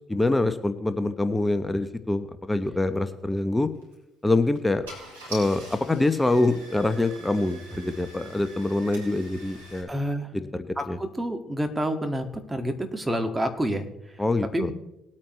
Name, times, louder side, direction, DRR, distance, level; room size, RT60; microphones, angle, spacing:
voice 1, 0.1-3.7 4.2-4.8 5.3-9.9 10.3-11.0 14.2-14.7, left 2 dB, 15° left, 10 dB, 1.0 m, -25 dB
Car / Engine starting, 3.7-4.0 4.6-4.7 4.8-9.8, right 2 dB, 85° right, 3.2 m, -44 dB
voice 2, 9.9-10.3 10.8-13.9 14.1-14.2 14.5-14.7, equal, 15° right, 5 dB, 2.0 m, -28 dB
20.5 x 8.7 x 3.2 m, 0.91 s
hypercardioid pair, 50°, 0 cm